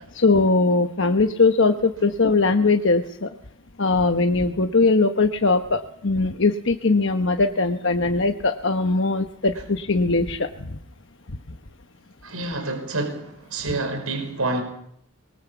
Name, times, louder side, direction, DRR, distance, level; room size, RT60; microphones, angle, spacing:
voice 1, 0.1-3.3 3.8-10.8 11.3-11.4, left 3 dB, 55° left, 1.1 m, -20 dB
voice 2, 12.2-14.6, right 2 dB, 85° right, 5.4 m, -28 dB
25.0 x 22.5 x 7.0 m
head